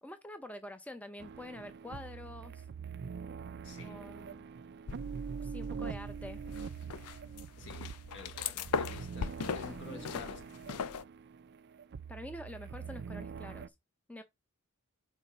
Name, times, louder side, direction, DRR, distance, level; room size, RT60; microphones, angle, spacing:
voice 1, 0.0-2.6 3.8-4.5 5.4-6.4 9.6-10.1 12.1-13.7 14.1-14.2, left 1 dB, 5° left, 0.6 m, -46 dB
sound 1, 1.2-13.7, right 6 dB, 50° right, 0.4 m, -44 dB
voice 2, 3.6-4.0 7.6-10.9, left 2 dB, 55° left, 1.4 m, -50 dB
sound 2, 4.9-5.6 5.9-11.0, left 6 dB, 80° left, 0.5 m, -38 dB
5.6 x 3.6 x 5.3 m
head